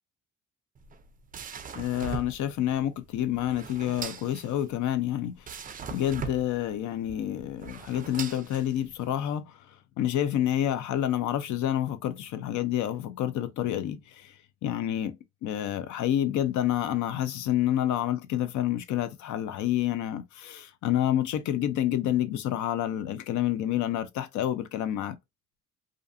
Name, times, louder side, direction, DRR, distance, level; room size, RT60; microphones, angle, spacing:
sound 1, 0.7-9.1, right 6 dB, 30° right, 0.4 m, -41 dB
voice 1, 1.8-5.4 5.9-9.6 10.0-14.3 14.6-25.2, left 11 dB, 75° left, 0.5 m, -28 dB
2.5 x 2.3 x 2.5 m
cardioid pair, 90°, 30 cm